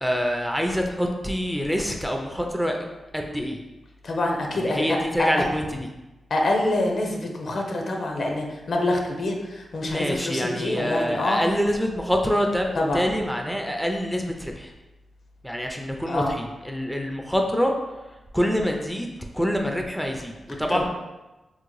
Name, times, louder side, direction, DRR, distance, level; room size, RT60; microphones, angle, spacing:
voice 1, 0.0-2.8 3.1-3.6 4.5-5.9 9.8-14.7 15.4-17.7 18.3-19.1 19.3-20.9, equal, ahead, 2 dB, 0.4 m, -26 dB
voice 2, 4.0-5.5 6.3-11.4 12.7-13.0 16.1-16.3 20.7-20.8, left 2 dB, 65° left, 1 dB, 0.5 m, -26 dB
3.6 x 2.1 x 3.1 m, 1.1 s
cardioid pair, 75°, 0 cm